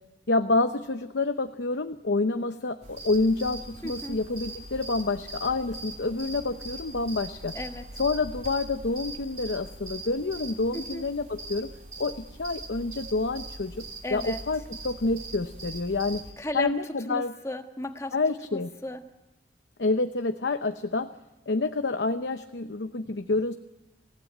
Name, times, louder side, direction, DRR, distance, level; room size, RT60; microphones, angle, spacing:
voice 1, 0.3-7.5 8.0-11.7 12.0-13.8 14.1-16.2 16.5-17.3 18.1-18.7 19.8-21.1 21.5-23.5, left 3 dB, 75° left, 8 dB, 0.8 m, -28 dB
sound 1, 2.8-16.3, right 2 dB, 40° right, 3.1 m, -41 dB
voice 2, 3.8-4.2 7.5-7.9 10.7-11.0 14.0-14.4 16.4-16.7 17.1-18.1 18.5-19.0, left 1 dB, 15° left, 6 dB, 1.4 m, -35 dB
26.5 x 16.5 x 9.3 m, 1.0 s
head